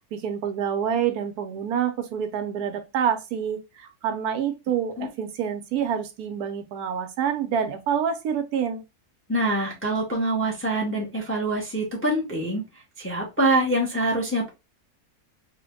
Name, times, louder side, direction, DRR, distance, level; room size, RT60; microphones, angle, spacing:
voice 1, 0.1-8.8, right 8 dB, 80° right, 1.1 m, -27 dB
voice 2, 9.3-12.6 13.0-14.5, right 1 dB, 10° left, 0.6 m, -25 dB
3.3 x 2.1 x 3.6 m
omnidirectional pair, 1.7 m